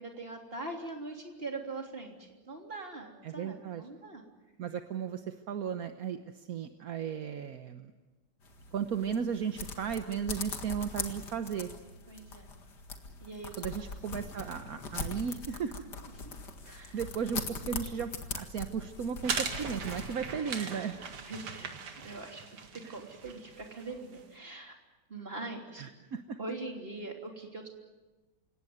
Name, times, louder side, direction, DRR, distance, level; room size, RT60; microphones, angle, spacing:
voice 1, 0.0-4.2 12.1-12.5 13.2-13.9 16.2-16.4 16.7-17.0 20.5-20.9 21.2-24.8 25.1-25.8 26.4-27.7, right 2 dB, 25° right, 2 dB, 3.5 m, -42 dB
voice 2, 3.2-3.8 4.6-7.9 8.7-11.7 13.6-15.9 16.6-21.0 22.8-22.9 25.8-26.4, right 7 dB, 50° right, 8 dB, 1.2 m, -35 dB
sound 1, 8.4-20.1, left 4 dB, 50° left, 2.4 m, -42 dB
sound 2, 19.2-24.2, right 5 dB, 90° right, 2.8 m, -39 dB
28.0 x 17.5 x 9.4 m, 1.2 s
omnidirectional pair, 2.4 m